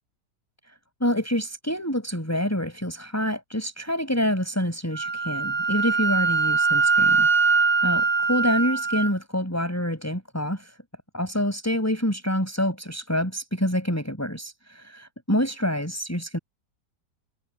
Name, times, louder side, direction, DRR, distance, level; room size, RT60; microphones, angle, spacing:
voice 1, 1.0-10.8 11.1-16.4, equal, 10° left, 6.5 m, -27 dB
Wind instrument woodwind instrument, 4.9-9.1, right 5 dB, 85° right, 2.6 m, -22 dB
omnidirectional pair, 1.9 m